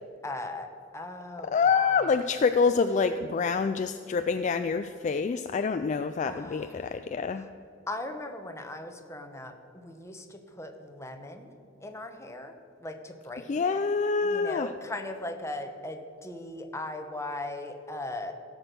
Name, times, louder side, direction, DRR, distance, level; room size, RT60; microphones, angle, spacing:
voice 1, 0.2-2.2 6.2-7.0 7.4-7.5 7.9-11.5 11.8-12.5 12.8-13.9 14.2-18.3, left 2 dB, 15° left, 5 dB, 0.9 m, -39 dB
voice 2, 1.5-7.5 13.5-14.7, left 5 dB, 40° left, 9 dB, 0.3 m, -26 dB
16.0 x 6.3 x 6.7 m, 2.4 s
head